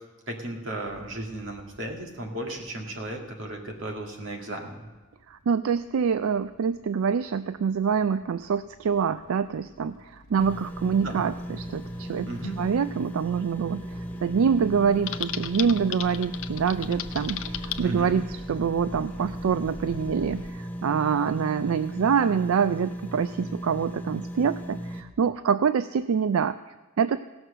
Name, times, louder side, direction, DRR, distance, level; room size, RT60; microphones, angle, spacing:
voice 1, 0.3-4.9 11.0-11.2 12.3-12.6 17.8-18.2, right 1 dB, 60° right, 1 dB, 2.1 m, -35 dB
sound 1, 0.8-20.5, left 1 dB, 80° left, 1.1 m, -48 dB
voice 2, 5.3-12.3 12.6-13.8 14.2-27.2, right 6 dB, 80° right, 13 dB, 0.4 m, -26 dB
sound 2, 10.4-25.0, equal, 5° left, 0.6 m, -37 dB
Typing, 15.1-17.8, left 11 dB, 65° left, 0.6 m, -34 dB
17.0 x 6.2 x 6.6 m, 1.2 s
head